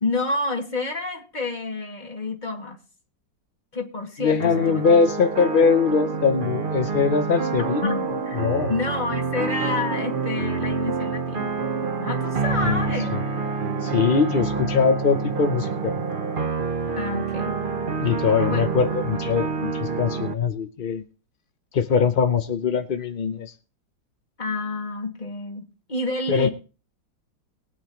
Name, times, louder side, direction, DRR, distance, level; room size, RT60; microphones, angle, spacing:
voice 1, 0.0-2.8 3.7-4.8 7.8-8.0 8.2-11.5 12.0-13.2 16.9-17.6 18.5-18.6 24.4-26.5, left 3 dB, 25° left, 2 dB, 2.2 m, -29 dB
voice 2, 4.2-8.7 12.6-12.8 13.1-13.2 13.8-15.9 18.0-21.0 21.7-23.5 26.3-26.5, left 5 dB, 55° left, 8 dB, 0.6 m, -22 dB
sound 1, 4.4-20.3, right 5 dB, 35° right, 0.9 m, -27 dB
21.5 x 9.1 x 3.0 m, 0.35 s
omnidirectional pair, 2.0 m